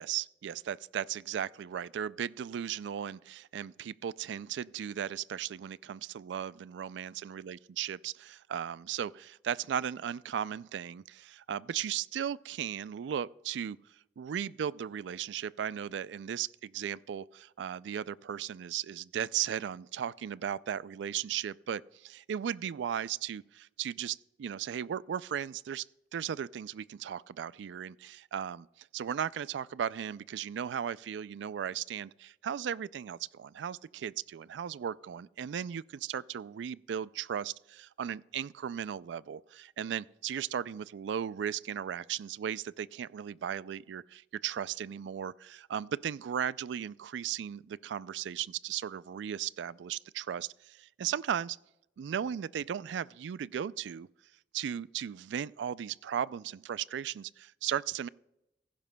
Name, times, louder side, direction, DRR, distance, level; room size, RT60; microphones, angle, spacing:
voice 1, 0.0-13.8 14.2-25.9 26.1-51.6 52.0-54.1 54.5-58.1, right 9 dB, 80° right, 0.3 m, -36 dB
16.0 x 15.5 x 2.2 m
head